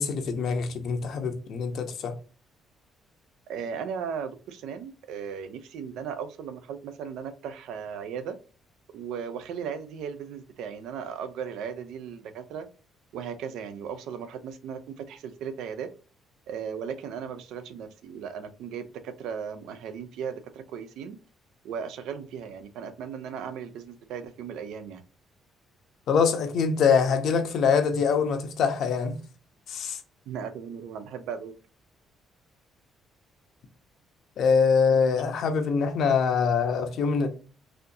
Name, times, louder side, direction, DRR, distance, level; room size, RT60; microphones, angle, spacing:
voice 1, 0.0-2.1 26.1-29.2 29.7-30.0 34.4-37.3, left 5 dB, 60° left, 0.8 m, -24 dB
voice 2, 3.5-8.4 8.9-12.7 13.1-15.9 16.5-21.2 21.6-25.0 30.3-31.5, right 7 dB, 85° right, 0.6 m, -36 dB
4.2 x 2.7 x 2.7 m
cardioid pair, 135°, 0 cm